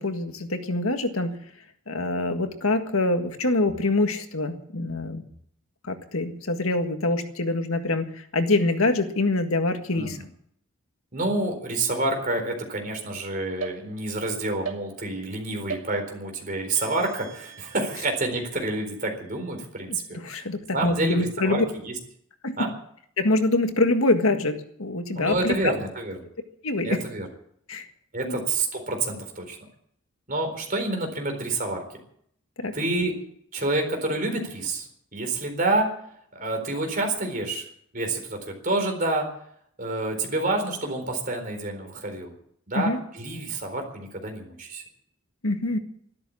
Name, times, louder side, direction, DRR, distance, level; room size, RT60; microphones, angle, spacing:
voice 1, 0.0-1.3 1.9-5.2 5.9-8.1 8.3-10.2 20.1-21.7 22.4-22.6 23.2-25.7 26.6-26.9 27.7-27.8 28.2-28.4 32.6-32.7 42.8-43.0 45.4-45.8, left 2 dB, 75° left, 7 dB, 1.7 m, -25 dB
voice 2, 9.9-10.3 11.1-20.0 20.4-20.5 20.7-21.9 22.6-22.7 25.1-26.2 26.8-27.3 28.1-29.6 30.3-31.8 32.7-33.1 33.5-35.9 36.4-37.7 37.9-39.3 39.8-42.3 42.7-44.8, right 2 dB, 40° right, 3 dB, 4.2 m, -28 dB
sound 1, 13.6-14.3 14.6-15.3 15.7-16.4 16.7-20.2, right 6 dB, 65° right, 2.6 m, -41 dB
13.5 x 12.5 x 8.5 m, 0.67 s
head